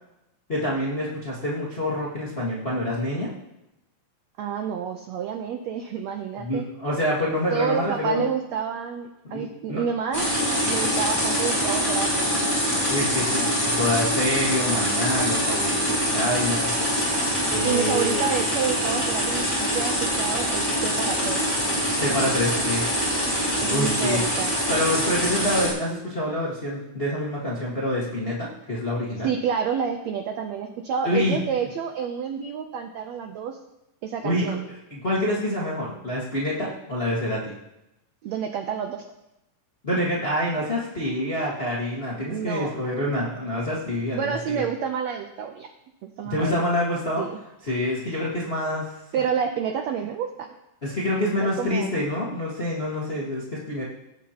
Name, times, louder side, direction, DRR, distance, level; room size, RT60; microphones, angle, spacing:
voice 1, 0.5-3.3 6.4-8.2 9.3-9.8 12.9-16.7 17.5-18.2 22.0-22.8 23.7-24.2 24.7-29.3 31.0-31.4 34.2-34.6 34.9-37.5 39.8-44.6 46.3-47.2 47.6-48.9 50.8-53.8, left 1 dB, 40° left, -6 dB, 0.8 m, -26 dB
voice 2, 4.4-6.7 7.5-10.3 10.7-12.4 17.6-21.5 23.6-24.5 29.2-33.6 34.0-34.6 38.2-39.1 42.3-43.0 44.1-45.7 46.0-46.6 47.2-47.4 49.1-50.6 51.4-51.9, right 7 dB, 85° right, 5 dB, 1.5 m, -29 dB
sound 1, 10.1-25.7, equal, 5° left, 3.2 m, -24 dB
18.0 x 8.4 x 2.9 m, 0.89 s
omnidirectional pair, 4.0 m